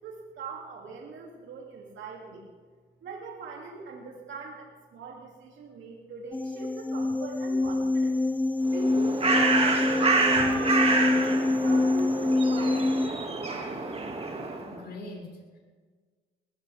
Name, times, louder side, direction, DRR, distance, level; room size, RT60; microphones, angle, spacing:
voice 1, 0.0-2.5 3.0-8.2 8.7-9.6 10.1-13.7, right 4 dB, 70° right, -1 dB, 2.8 m, -41 dB
sound 1, 6.3-13.1, left 2 dB, 10° left, 0.4 m, -26 dB
Bird, 8.7-14.7, right 3 dB, 30° right, 2.4 m, -27 dB
voice 2, 14.6-15.6, left 2 dB, 55° left, -1 dB, 6.5 m, -42 dB
20.5 x 17.0 x 3.6 m, 1.5 s
cardioid pair, 90°, 20 cm